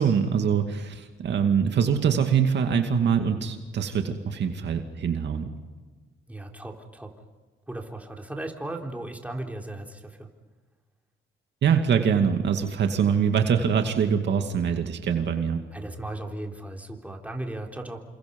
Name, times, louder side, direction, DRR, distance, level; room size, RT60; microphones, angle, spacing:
voice 1, 0.0-5.5 11.6-15.6, right 7 dB, 60° right, 5 dB, 2.4 m, -24 dB
voice 2, 6.3-7.1 7.7-10.3 15.7-18.0, right 1 dB, 5° right, 1 dB, 3.8 m, -36 dB
29.5 x 26.5 x 5.5 m, 1.4 s
cardioid pair, 90°, 20 cm